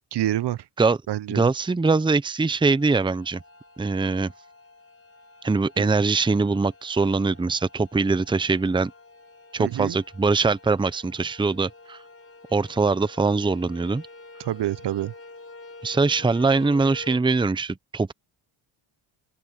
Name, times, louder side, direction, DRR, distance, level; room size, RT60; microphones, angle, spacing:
voice 1, 0.1-0.6 1.1-1.5 5.8-5.9 9.6-10.0 14.4-15.1, right 13 dB, 55° right, 0.8 m, -27 dB
voice 2, 1.3-3.4 3.8-4.3 5.4-8.9 9.5-12.0 12.5-14.0 15.8-18.1, right 4 dB, 10° right, 0.7 m, -22 dB
sound 1, 2.6-17.2, left 3 dB, 30° left, 4.7 m, -48 dB
open air
cardioid pair, 95°, 49 cm